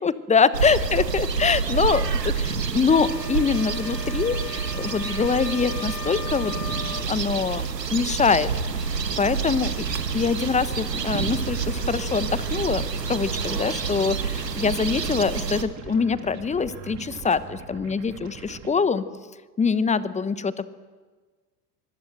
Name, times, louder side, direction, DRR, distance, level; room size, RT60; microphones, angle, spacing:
voice 1, 0.0-6.5 6.8-7.6 7.9-8.5 9.2-9.8 10.1-12.8 13.1-19.0 19.6-20.7, left 5 dB, 15° left, 15 dB, 1.1 m, -24 dB
sound 1, 0.5-15.6, right 5 dB, 85° right, 1.4 m, -28 dB
sound 2, 2.9-7.1, left 9 dB, 80° left, 1.2 m, -38 dB
sound 3, 9.1-18.7, right 7 dB, 35° right, 3.2 m, -41 dB
25.0 x 21.0 x 7.8 m, 1.4 s
figure-of-eight pair, 80°, 48 cm